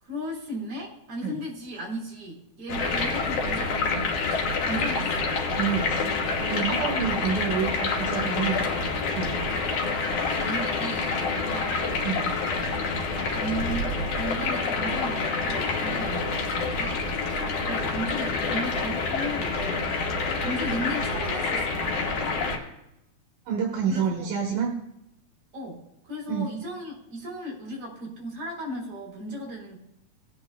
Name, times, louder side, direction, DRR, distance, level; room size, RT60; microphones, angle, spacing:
voice 1, 0.0-5.3 6.6-7.0 10.4-11.8 13.3-17.0 17.7-19.6 20.4-22.1 23.9-24.3 25.5-29.8, right 1 dB, 50° right, -3 dB, 3.9 m, -36 dB
sound 1, 2.7-22.6, left 4 dB, 80° left, 2.7 m, -27 dB
voice 2, 5.5-6.1 6.4-8.7 9.1-9.3 12.0-12.4 23.5-24.7 26.3-26.5, right 6 dB, 75° right, -1 dB, 2.6 m, -28 dB
18.5 x 8.8 x 2.3 m, 0.85 s
omnidirectional pair, 3.3 m